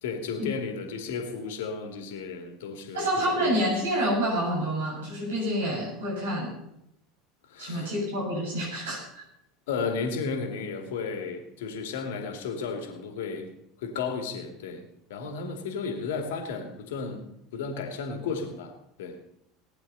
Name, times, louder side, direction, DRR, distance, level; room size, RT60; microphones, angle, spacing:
voice 1, 0.0-3.7 7.5-7.9 9.7-13.5 13.8-14.8 15.1-18.7 19.0-19.2, left 5 dB, 60° left, 6 dB, 2.5 m, -33 dB
voice 2, 2.9-6.5 7.6-9.2, equal, 65° right, -2 dB, 7.5 m, -28 dB
18.5 x 10.5 x 5.6 m, 0.80 s
figure-of-eight pair, 75°, 0 cm